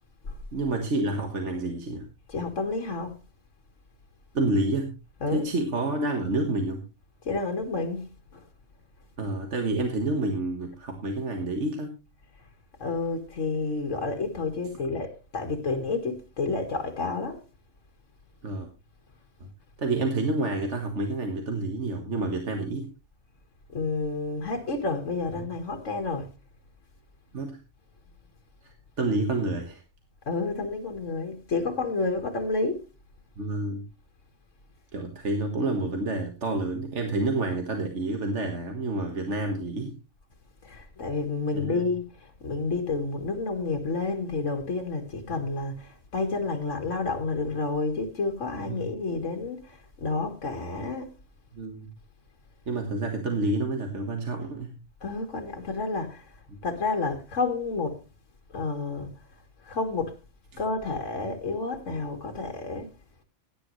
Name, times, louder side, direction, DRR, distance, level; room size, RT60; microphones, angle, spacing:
voice 1, 0.5-2.1 4.3-5.0 5.3-6.8 9.2-12.0 18.4-18.7 19.4-19.5 19.8-22.9 25.4-25.5 27.3-27.6 28.6-29.8 33.4-33.8 34.9-39.9 41.5-41.9 45.3-45.4 48.6-48.9 51.5-51.9 52.7-54.8 56.5-56.6 60.5-60.6, right 2 dB, 70° right, 1.9 m, -29 dB
voice 2, 2.3-3.1 5.2-5.4 7.3-8.1 12.8-17.4 23.7-26.3 30.3-32.8 40.7-42.0 42.4-49.6 50.0-51.1 55.0-56.2 56.6-58.0 58.5-59.1 59.7-60.1 60.6-62.9, left 3 dB, 80° left, 2.0 m, -30 dB
16.5 x 10.5 x 3.1 m
omnidirectional pair, 1.3 m